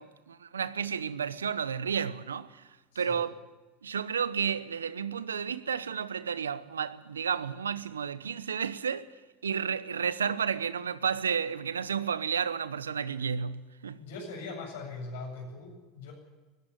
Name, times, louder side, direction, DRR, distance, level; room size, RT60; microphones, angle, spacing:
voice 1, 0.0-2.5 2.9-3.4 3.8-9.1 9.4-14.0, right 7 dB, 90° right, 0.9 m, -32 dB
voice 2, 2.9-3.2 14.0-16.1, left 3 dB, 75° left, 7.9 m, -41 dB
19.0 x 16.0 x 9.9 m
hypercardioid pair, 80°, 0 cm